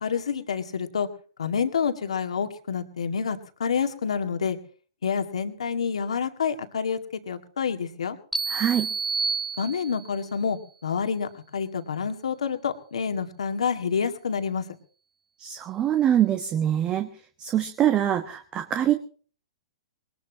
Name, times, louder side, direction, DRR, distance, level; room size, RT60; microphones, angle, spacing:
voice 1, 0.0-1.1 1.4-4.6 5.0-7.0 7.3-8.2 9.6-14.6, left 6 dB, 80° left, 7 dB, 2.1 m, -28 dB
sound 1, 8.3-10.2, right 4 dB, ahead, 1.2 m, -29 dB
voice 2, 8.5-8.9 15.4-17.1 17.4-18.9, right 10 dB, 25° right, 9 dB, 1.2 m, -24 dB
21.5 x 19.5 x 2.9 m, 0.41 s
hypercardioid pair, 120°, 3 cm